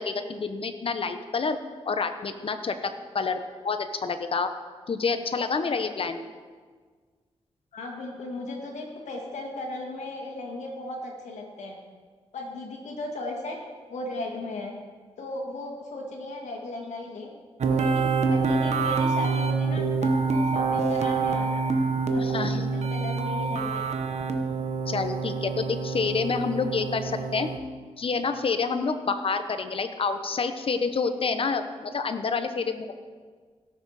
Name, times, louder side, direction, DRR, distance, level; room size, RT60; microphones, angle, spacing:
voice 1, 0.0-1.6 1.9-2.7 3.1-3.4 3.6-4.5 4.9-6.2 22.2-22.6 24.9-27.5 28.0-32.9, left 4 dB, 50° left, 8 dB, 0.9 m, -28 dB
voice 2, 7.7-11.8 12.3-13.6 13.9-14.7 15.2-17.3 17.7-21.6 22.1-23.9, left 2 dB, 90° left, 1 dB, 2.0 m, -36 dB
sound 1, 17.6-27.6, right 4 dB, 75° right, 1.1 m, -26 dB
17.0 x 6.7 x 4.9 m, 1.6 s
cardioid pair, 70°, 12 cm